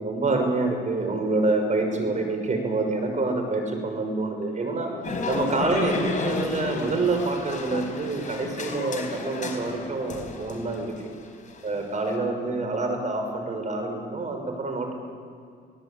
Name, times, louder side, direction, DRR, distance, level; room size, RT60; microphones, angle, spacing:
voice 1, 0.0-10.9 11.6-14.9, right 3 dB, 40° right, 4 dB, 6.3 m, -27 dB
sound 1, 5.0-12.2, left 4 dB, 40° left, 4.8 m, -33 dB
26.5 x 18.0 x 8.8 m, 2.2 s
cardioid pair, 90°, 20 cm